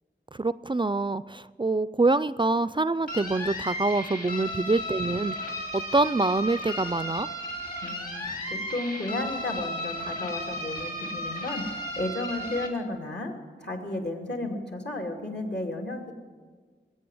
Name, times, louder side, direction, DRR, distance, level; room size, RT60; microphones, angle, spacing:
voice 1, 0.3-7.3, right 3 dB, 25° right, 16 dB, 0.4 m, -26 dB
sound 1, 3.1-12.7, equal, 45° left, 3.1 m, -34 dB
voice 2, 7.8-16.1, left 2 dB, 65° left, 2 dB, 2.7 m, -33 dB
21.0 x 8.7 x 7.8 m, 1.5 s
wide cardioid pair, 50°, 19 cm